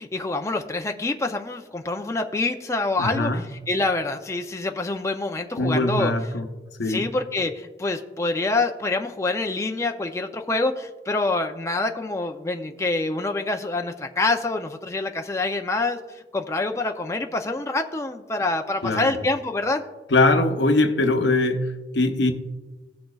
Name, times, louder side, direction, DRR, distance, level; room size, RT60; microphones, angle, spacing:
voice 1, 0.0-6.1 6.8-19.8, left 2 dB, 15° left, 4 dB, 0.4 m, -26 dB
voice 2, 3.0-3.4 5.6-6.5 6.8-7.1 18.8-19.1 20.1-22.3, left 2 dB, 80° left, 6 dB, 0.8 m, -21 dB
17.0 x 6.4 x 2.3 m, 1.2 s
head